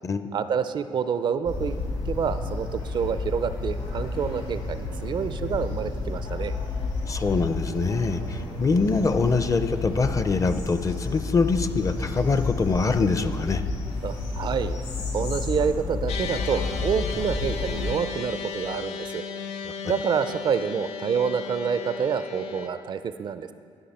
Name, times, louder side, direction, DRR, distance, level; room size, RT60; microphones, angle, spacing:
voice 1, 0.3-1.8 2.1-6.5 14.0-14.8 15.1-19.2 19.8-23.5, right 6 dB, 50° right, 12 dB, 0.4 m, -27 dB
sound 1, 1.4-17.9, left 3 dB, 65° left, 2.3 m, -31 dB
voice 2, 7.1-13.6 19.6-19.7, left 4 dB, 30° left, 10 dB, 0.5 m, -24 dB
sound 2, 16.1-22.7, left 6 dB, 85° left, 0.5 m, -35 dB
11.5 x 5.5 x 4.2 m, 2.2 s
supercardioid pair, 75°, 10 cm